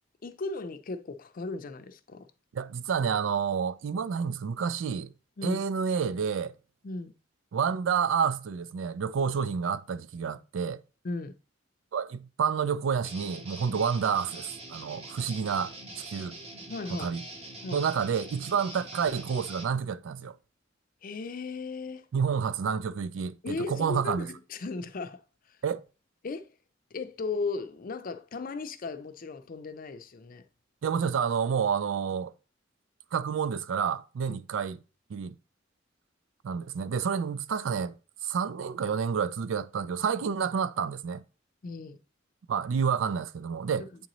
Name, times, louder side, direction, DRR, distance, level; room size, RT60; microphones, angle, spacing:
voice 1, 0.2-2.3 5.4-5.6 6.8-7.1 11.0-11.4 16.7-17.1 17.6-17.8 21.0-22.0 23.4-25.2 26.2-26.5 26.9-30.4 34.3-34.4 41.6-42.0 43.8-43.9, left 3 dB, 45° left, 0.5 m, -36 dB
voice 2, 2.5-5.1 5.4-6.5 7.5-10.8 11.9-16.4 16.9-17.2 17.7-20.4 22.1-24.3 25.6-25.8 30.8-32.3 33.1-34.8 35.1-35.3 36.4-37.9 38.2-41.2 42.5-44.1, right 6 dB, 80° right, 0.4 m, -29 dB
Guitar, 13.0-19.7, right 1 dB, 30° right, 1.1 m, -44 dB
8.3 x 3.9 x 3.0 m
head